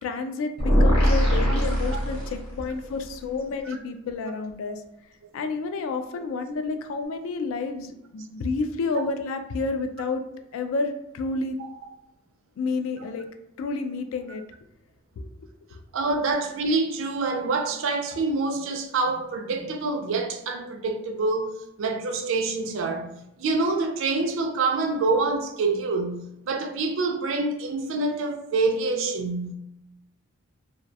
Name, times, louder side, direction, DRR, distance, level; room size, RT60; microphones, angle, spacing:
voice 1, 0.0-4.8 5.3-10.2 10.5-11.6 12.6-13.3 13.6-14.4 15.2-15.3, left 3 dB, 70° left, 0.3 m, -30 dB
sound 1, 0.6-2.7, equal, 25° left, 0.8 m, -21 dB
voice 2, 15.9-29.5, right 3 dB, 65° right, 0.4 m, -26 dB
2.2 x 2.2 x 2.6 m
head